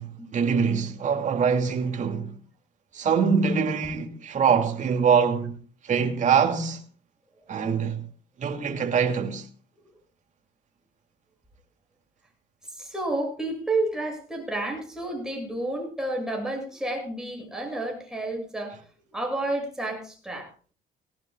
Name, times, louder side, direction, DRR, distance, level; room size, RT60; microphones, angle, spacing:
voice 1, 0.0-2.3 2.9-5.6 5.8-6.8 7.5-8.1 8.4-9.5, right 6 dB, 45° right, 2.6 m, -24 dB
voice 2, 12.7-18.8 19.1-20.5, right 2 dB, 5° right, 7.5 m, -30 dB
19.0 x 18.5 x 2.4 m
cardioid pair, 110°, 17 cm